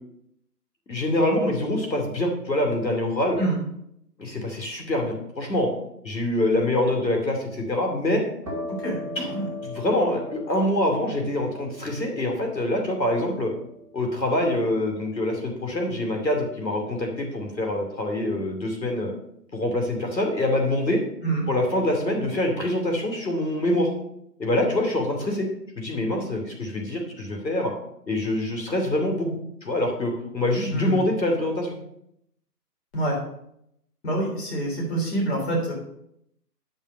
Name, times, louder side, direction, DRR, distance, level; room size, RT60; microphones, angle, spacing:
voice 1, 0.9-3.4 4.2-5.7 6.0-8.2 9.2-9.3 9.6-13.5 13.9-19.1 19.5-21.0 21.5-23.9 24.4-25.5 25.8-27.7 28.1-29.3 29.6-31.8, left 1 dB, 90° left, 3 dB, 2.6 m, -25 dB
sound 1, 8.4-15.9, left 1 dB, 5° right, 2.1 m, -40 dB
voice 2, 8.8-9.5 21.2-21.5 30.7-31.0 32.9-33.2 34.0-35.7, right 1 dB, 40° left, -2 dB, 3.5 m, -26 dB
9.3 x 5.6 x 5.3 m, 0.75 s
figure-of-eight pair, 155°, 50 cm